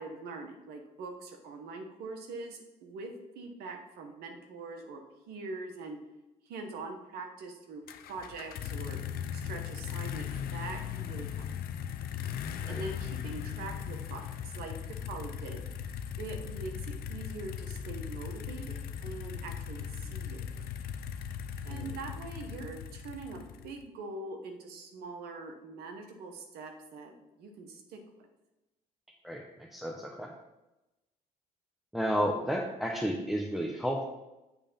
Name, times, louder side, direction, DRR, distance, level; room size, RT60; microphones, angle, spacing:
voice 1, 0.0-5.0 5.3-6.0 6.5-7.8 8.1-9.0 9.3-11.5 12.7-14.7 15.0-15.6 16.2-20.4 21.6-28.0, right 3 dB, 75° right, 4 dB, 1.2 m, -43 dB
sound 1, 7.9-23.8, left 8 dB, 70° left, 0.6 m, -38 dB
voice 2, 29.2-30.3 31.9-34.1, equal, ahead, -1 dB, 0.9 m, -32 dB
7.4 x 3.4 x 5.5 m, 0.99 s
supercardioid pair, 70°, 16 cm